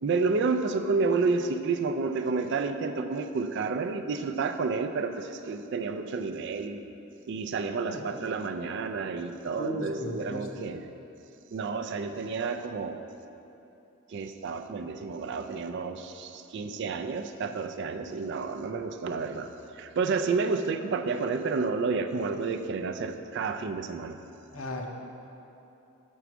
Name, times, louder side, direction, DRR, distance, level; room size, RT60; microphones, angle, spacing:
voice 1, 0.0-6.8 7.3-10.9 11.5-13.0 14.1-24.2, right 4 dB, 55° right, 8 dB, 0.4 m, -30 dB
voice 2, 9.6-10.7 24.5-24.9, left 1 dB, 65° left, 2 dB, 0.8 m, -35 dB
7.0 x 4.6 x 6.0 m, 2.9 s
head